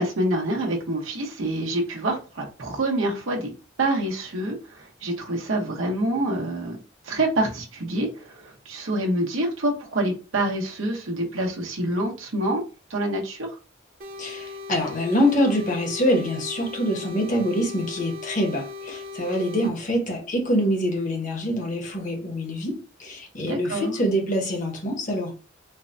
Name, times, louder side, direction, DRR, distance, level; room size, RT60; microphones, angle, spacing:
voice 1, 0.0-3.5 3.8-6.8 7.1-12.6 12.9-13.5 23.4-23.9, right 1 dB, 85° right, 0.9 m, -26 dB
sound 1, 14.0-19.7, left 4 dB, 45° right, 0.8 m, -38 dB
voice 2, 14.2-25.3, equal, 40° left, 0.9 m, -25 dB
4.4 x 2.1 x 2.5 m
head